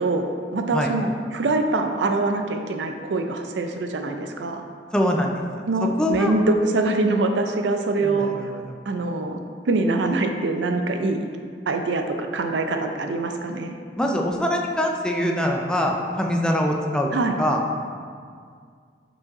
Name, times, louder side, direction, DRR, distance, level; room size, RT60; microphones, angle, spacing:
voice 1, 0.0-4.6 5.6-8.3 8.9-9.4 9.7-11.3 11.7-13.8 17.1-17.4, right 2 dB, 75° right, 5 dB, 0.5 m, -24 dB
voice 2, 4.9-5.3 5.8-6.3 8.0-8.6 14.0-17.1 17.4-17.6, equal, 5° left, 0 dB, 0.5 m, -23 dB
5.3 x 4.7 x 4.1 m, 2.1 s
head